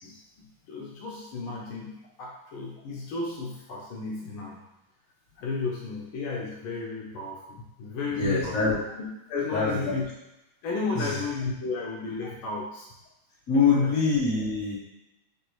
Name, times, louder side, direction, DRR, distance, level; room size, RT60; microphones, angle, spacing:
voice 1, 0.0-4.6 5.4-8.6 9.3-10.0 10.6-12.9 13.5-14.0, left 3 dB, 85° left, -3 dB, 1.6 m, -33 dB
voice 2, 8.2-8.8 9.5-9.9 10.9-11.2 13.5-14.7, left 4 dB, 40° left, -9 dB, 1.9 m, -24 dB
6.3 x 2.6 x 3.0 m, 0.92 s
omnidirectional pair, 2.3 m